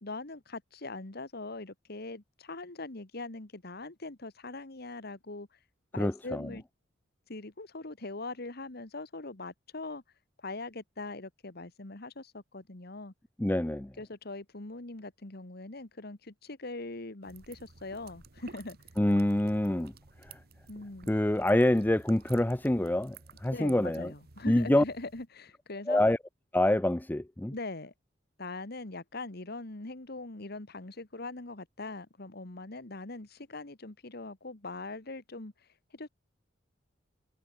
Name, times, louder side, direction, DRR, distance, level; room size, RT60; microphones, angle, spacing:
voice 1, 0.0-5.6 5.9-6.6 7.3-10.0 10.4-13.1 14.0-18.8 20.7-21.1 23.5-26.0 27.5-27.9 28.4-36.1, left 2 dB, 55° left, 1.8 m, -41 dB
voice 2, 6.0-6.5 13.4-13.9 19.0-19.9 20.3-20.4 21.1-23.2 23.4-24.1 24.4-24.8 25.9-26.2 26.5-27.5, left 1 dB, 10° left, 0.5 m, -26 dB
sound 1, 17.2-25.3, right 4 dB, 55° right, 1.4 m, -54 dB
head